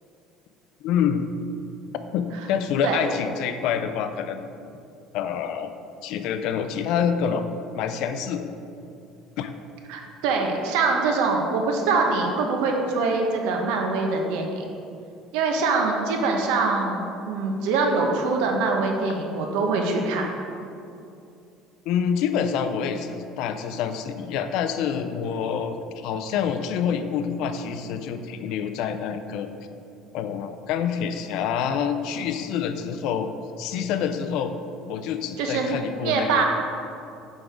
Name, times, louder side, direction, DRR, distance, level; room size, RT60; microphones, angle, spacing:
voice 1, 0.8-1.2 2.1-4.4 5.1-5.7 6.0-7.4 7.7-8.5 9.4-9.5 21.9-29.5 30.1-33.3 33.6-34.5 34.9-36.4, left 7 dB, 65° left, 9 dB, 0.4 m, -27 dB
voice 2, 9.9-14.6 15.3-20.3 35.4-35.7 36.0-36.4, right 4 dB, 85° right, 2 dB, 0.9 m, -24 dB
6.2 x 4.6 x 5.0 m, 2.6 s
cardioid pair, 150°, 0 cm